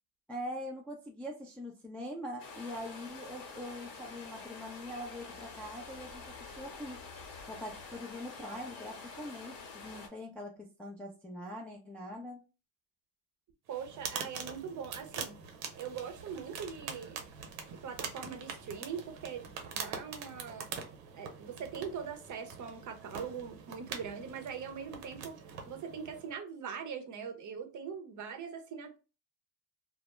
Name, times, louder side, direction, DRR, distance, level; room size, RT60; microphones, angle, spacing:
voice 1, 0.3-7.0 7.4-12.4, equal, 5° left, 0.3 m, -43 dB
sound 1, 2.4-10.1, left 4 dB, 60° left, 1.0 m, -47 dB
voice 2, 13.7-15.4 15.7-17.2 17.7-20.7 21.1-25.3 25.7-29.0, right 7 dB, 40° right, 0.6 m, -42 dB
sound 2, 13.7-26.3, right 6 dB, 80° right, 0.7 m, -44 dB
2.1 x 2.0 x 3.0 m
hypercardioid pair, 70°, 49 cm